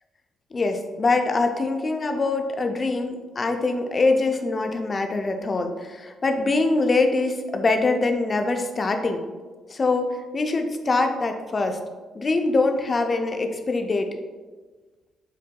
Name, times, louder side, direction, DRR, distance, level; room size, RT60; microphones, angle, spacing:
voice 1, 0.5-9.2 9.7-11.8 12.1-14.1, left 3 dB, 35° left, 5 dB, 0.5 m, -23 dB
7.3 x 2.6 x 2.2 m, 1.3 s
cardioid pair, 90°, 0 cm